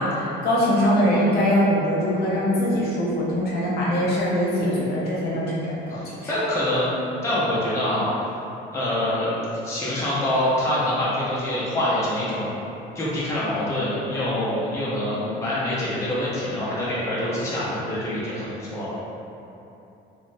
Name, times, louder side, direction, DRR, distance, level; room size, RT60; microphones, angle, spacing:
voice 1, 0.0-6.3, equal, 60° left, -6 dB, 0.8 m, -22 dB
voice 2, 5.9-8.1 8.7-9.3 9.6-12.6 12.9-18.9, left 1 dB, 15° left, -9 dB, 0.6 m, -25 dB
2.3 x 2.1 x 3.9 m, 2.9 s
cardioid pair, 140°, 19 cm